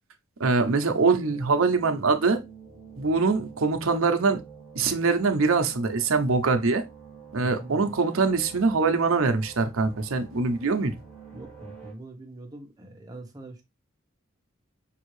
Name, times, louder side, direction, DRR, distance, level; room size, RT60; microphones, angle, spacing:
voice 1, 0.4-2.4 3.0-4.4 4.8-6.8 7.3-10.9, right 4 dB, 75° right, 0.7 m, -23 dB
sound 1, 1.1-11.9, right 5 dB, 5° left, 1.6 m, -47 dB
voice 2, 7.4-7.9 11.3-13.6, right 1 dB, 20° right, 1.0 m, -43 dB
5.4 x 2.7 x 3.1 m
head